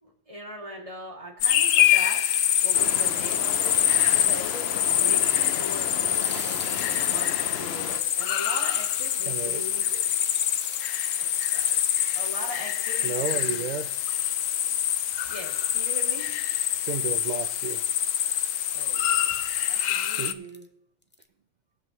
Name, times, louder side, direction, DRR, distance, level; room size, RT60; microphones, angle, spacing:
voice 1, 0.0-2.2 2.6-3.8 4.2-10.1 11.2-11.8 12.1-13.7 15.3-16.3 18.7-19.4 19.7-20.7, equal, 25° right, -3 dB, 2.5 m, -40 dB
sound 1, 1.4-20.3, left 11 dB, 85° left, 1.0 m, -25 dB
sound 2, 1.8-4.6 4.9-5.7 6.0-12.8 13.3-13.4 13.7-14.5 15.1-15.7 16.4-16.8 17.3-17.5 18.0-18.3 18.7-18.9 19.4-19.8 20.4-20.7 21.0-21.2, left 2 dB, 15° left, 0.4 m, -43 dB
sound 3, 2.7-8.0, left 8 dB, 60° left, 0.8 m, -35 dB
voice 2, 9.2-9.6 13.0-13.9 16.7-17.8 20.2-20.5, right 5 dB, 75° right, 10 dB, 0.4 m, -32 dB
20.0 x 7.6 x 3.1 m, 0.76 s
omnidirectional pair, 1.3 m